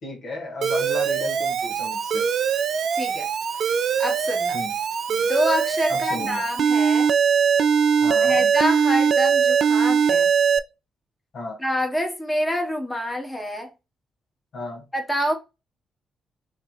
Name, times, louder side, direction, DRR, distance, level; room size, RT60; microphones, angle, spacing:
voice 1, 0.0-2.2 4.5-4.7 5.9-6.4 8.0-8.5 11.3-11.6 14.5-14.8, left 3 dB, 60° left, 1.6 m, -34 dB
Alarm, 0.6-10.6, right 7 dB, 60° right, 0.4 m, -21 dB
voice 2, 2.9-3.3 4.0-4.6 5.1-7.1 8.1-10.3 11.6-13.7 14.9-15.3, equal, 10° left, 1.4 m, -27 dB
3.2 x 3.1 x 4.2 m
hypercardioid pair, 40°, 0 cm